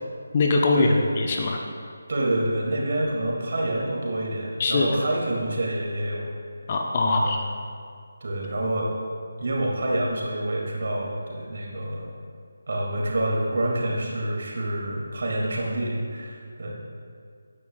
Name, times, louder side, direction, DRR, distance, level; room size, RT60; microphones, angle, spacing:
voice 1, 0.3-0.9 1.2-1.6 4.6-5.0 6.7-7.4, left 3 dB, 30° left, 1 dB, 0.8 m, -22 dB
voice 2, 2.1-6.3 7.1-7.4 8.2-8.9 9.4-12.1 12.7-16.8, right 1 dB, 45° right, -2 dB, 2.1 m, -27 dB
14.5 x 9.9 x 2.3 m, 2.1 s
figure-of-eight pair, 155°, 0 cm